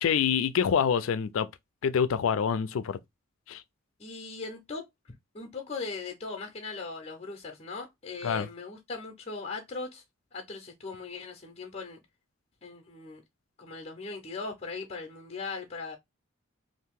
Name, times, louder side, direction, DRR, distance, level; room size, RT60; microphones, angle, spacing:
voice 1, 0.0-1.5 1.8-3.0 3.5-3.6 8.2-8.5, left 7 dB, 75° left, 0.4 m, -26 dB
voice 2, 4.0-4.8 5.3-10.0 10.3-12.0 12.6-13.2 13.6-16.0, left 4 dB, 30° left, 0.6 m, -39 dB
2.7 x 2.6 x 3.5 m
head